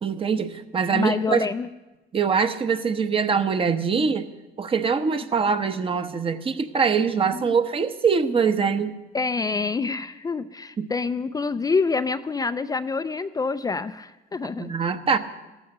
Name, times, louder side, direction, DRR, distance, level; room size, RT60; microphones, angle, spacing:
voice 1, 0.0-1.5 2.1-4.3 4.6-8.9 10.8-10.9 14.6-15.2, right 5 dB, 30° right, 9 dB, 1.0 m, -23 dB
voice 2, 0.9-1.7 3.9-4.1 7.3-7.6 9.1-14.7, left 4 dB, 20° left, 10 dB, 0.5 m, -27 dB
14.5 x 13.5 x 6.6 m, 1.1 s
cardioid pair, 110°, 17 cm